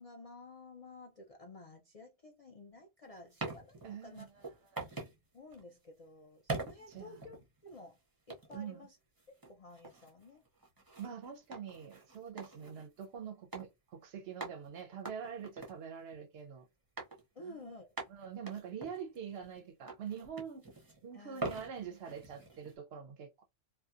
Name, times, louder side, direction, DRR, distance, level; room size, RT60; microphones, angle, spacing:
voice 1, 0.0-4.3 5.3-8.0 8.3-9.0 9.3-10.4 17.4-17.9 21.1-21.7, left 2 dB, 55° left, 0.4 m, -52 dB
sound 1, 3.1-5.2 5.5-5.7 6.5-7.8 8.3-8.7 9.2-13.1 13.5-13.7 13.9-14.0 14.4-16.5 17.0-17.2 17.6-17.7 18.0-19.6 19.9-21.0 21.3-22.7, right 3 dB, 25° right, 0.6 m, -44 dB
voice 2, 3.8-4.5 4.7-4.9 6.9-7.2 8.5-8.9 11.0-16.7 17.4-17.7 18.1-20.6 21.0-23.4, right 7 dB, 65° right, 0.7 m, -45 dB
2.7 x 2.1 x 2.3 m
omnidirectional pair, 1.3 m